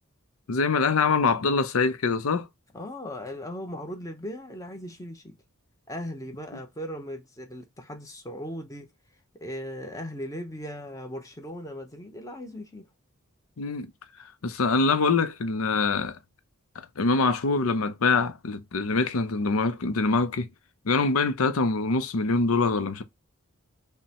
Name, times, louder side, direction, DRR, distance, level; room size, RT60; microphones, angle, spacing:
voice 1, 0.5-2.5 13.6-13.9 14.4-16.2 17.0-20.5 20.9-23.0, left 4 dB, 80° left, 0.6 m, -24 dB
voice 2, 2.7-5.4 5.9-8.9 9.4-12.9, equal, 15° left, 0.7 m, -38 dB
5.3 x 2.1 x 2.8 m
head